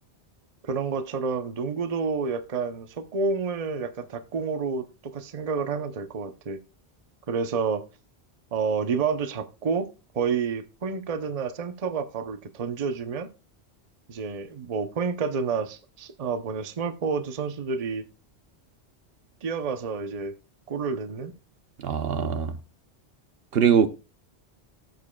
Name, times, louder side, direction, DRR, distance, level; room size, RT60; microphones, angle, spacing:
voice 1, 0.6-6.6 7.3-7.8 8.5-9.9 10.1-13.3 14.1-18.0 19.4-20.3 20.7-21.3, right 5 dB, 40° right, 0.7 m, -29 dB
voice 2, 21.8-22.5 23.5-23.9, right 7 dB, 65° right, 0.9 m, -22 dB
17.5 x 7.4 x 2.3 m
omnidirectional pair, 1.1 m